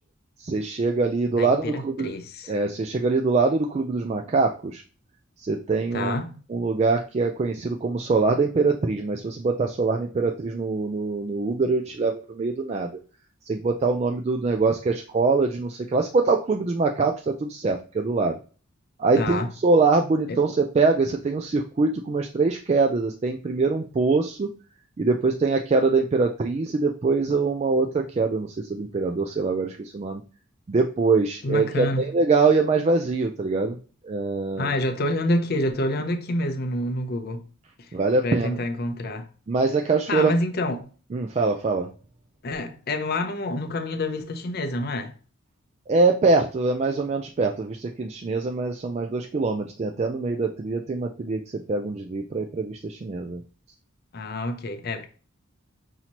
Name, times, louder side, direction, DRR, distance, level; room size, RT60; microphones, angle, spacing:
voice 1, 0.4-2.1 2.5-4.8 5.4-6.1 6.5-12.9 13.4-18.4 19.0-24.5 25.0-30.2 30.7-33.8 34.0-34.7 37.9-38.6 39.5-40.3 41.1-41.9 45.9-51.4 51.7-53.4, right 3 dB, 30° right, 0.3 m, -23 dB
voice 2, 1.4-2.5 5.9-6.4 19.2-19.5 20.3-20.4 31.4-32.1 34.6-37.5 37.8-37.9 38.2-39.3 40.1-40.9 42.4-45.1 54.1-55.1, left 1 dB, 50° left, 0.6 m, -27 dB
5.8 x 2.7 x 2.9 m
head